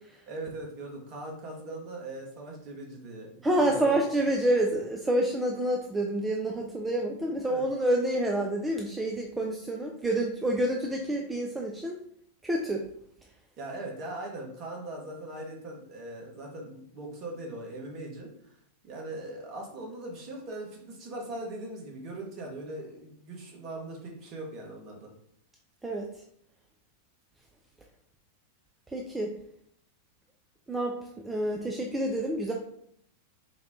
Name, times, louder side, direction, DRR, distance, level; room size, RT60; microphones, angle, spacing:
voice 1, 0.3-3.4 3.7-4.0 7.5-7.6 13.6-18.5 18.8-25.1, right 2 dB, 40° right, 0 dB, 1.1 m, -40 dB
voice 2, 3.4-11.9 12.4-12.9 25.8-26.1 28.9-29.3 30.7-31.0 31.2-32.5, right 1 dB, 10° right, 1 dB, 0.4 m, -28 dB
4.0 x 2.3 x 3.5 m, 0.69 s
figure-of-eight pair, 90°, 0 cm